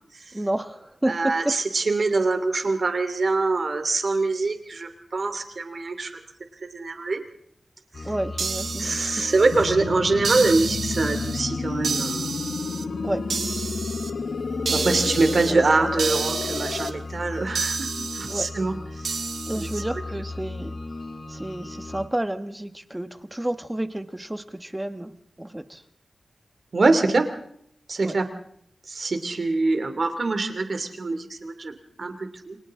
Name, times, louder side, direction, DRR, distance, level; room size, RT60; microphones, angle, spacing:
voice 1, 0.3-1.5 8.0-9.3 13.0-13.3 14.7-14.9 15.5-15.6 18.3-18.5 19.5-20.8 21.3-25.8 28.0-28.2, right 1 dB, 15° right, 9 dB, 1.3 m, -30 dB
voice 2, 1.1-6.1 6.7-7.2 7.9-8.1 8.8-12.3 14.7-19.1 19.6-19.7 26.7-27.3 27.9-28.3 28.9-32.6, right 3 dB, 55° right, 7 dB, 2.7 m, -24 dB
sound 1, 7.9-22.1, left 2 dB, 50° left, 2.1 m, -36 dB
sound 2, 8.4-9.7 10.2-11.4 11.8-12.8 13.3-14.1 14.7-15.5 16.0-16.9 17.6-18.5 19.0-19.8, right 5 dB, 90° right, 1.3 m, -30 dB
sound 3, 9.5-16.9, left 4 dB, 85° left, 1.0 m, -31 dB
29.5 x 24.5 x 3.7 m, 0.68 s
wide cardioid pair, 105°, 0 cm